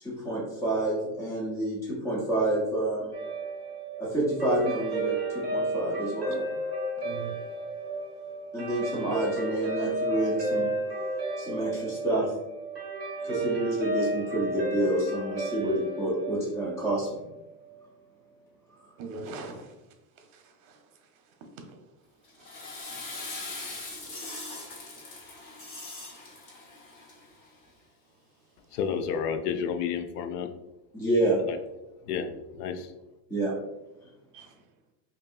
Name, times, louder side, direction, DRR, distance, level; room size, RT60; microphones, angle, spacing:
voice 1, 0.0-3.1 4.0-6.4 8.5-10.7 11.4-12.3 13.2-17.2 30.9-31.4 33.3-33.5, right 1 dB, 5° left, -5 dB, 0.4 m, -28 dB
Guitar, 3.1-17.7, right 2 dB, 20° right, 1.3 m, -33 dB
voice 2, 7.0-7.3 19.0-19.7 20.3-20.8 23.4-23.6 24.0-24.1 34.3-34.5, right 4 dB, 55° right, 4 dB, 0.8 m, -41 dB
Water / Toilet flush, 22.2-27.5, left 3 dB, 45° left, 1.2 m, -42 dB
sound 1, 22.8-26.6 26.9-27.0, left 1 dB, 25° left, 0.9 m, -46 dB
voice 3, 28.7-30.5 31.5-31.6 32.1-32.9, left 7 dB, 70° left, 8 dB, 0.6 m, -31 dB
5.3 x 2.7 x 2.4 m, 0.97 s
supercardioid pair, 160°, 49 cm